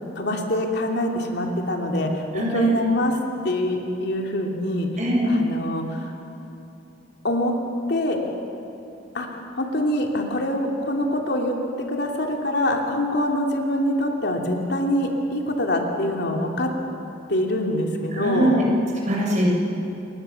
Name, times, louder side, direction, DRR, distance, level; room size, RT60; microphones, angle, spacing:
voice 1, 0.1-3.2 3.4-4.9 5.2-6.1 7.2-7.5 7.9-8.2 9.1-16.7 17.3-18.5, left 1 dB, 60° left, 1 dB, 3.0 m, -24 dB
voice 2, 2.3-2.7 5.0-5.3 18.2-18.6 19.0-19.5, right 1 dB, 40° right, -2 dB, 6.5 m, -22 dB
29.0 x 23.0 x 7.2 m, 3.0 s
head